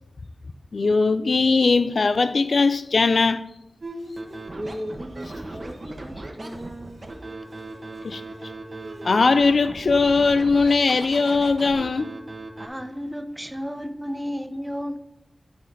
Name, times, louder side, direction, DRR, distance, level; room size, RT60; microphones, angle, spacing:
voice 1, 0.7-3.4 8.0-8.2 9.0-12.1, left 4 dB, 75° left, 0.4 m, -20 dB
Bowed string instrument, 3.8-9.2, right 1 dB, 70° right, 1.6 m, -44 dB
Scratching (performance technique), 4.2-12.7, right 2 dB, 45° right, 1.2 m, -38 dB
voice 2, 4.5-7.0, equal, 25° right, 1.4 m, -37 dB
voice 3, 12.6-15.0, equal, 10° right, 0.8 m, -32 dB
12.0 x 4.3 x 5.3 m
wide cardioid pair, 90°, 0 cm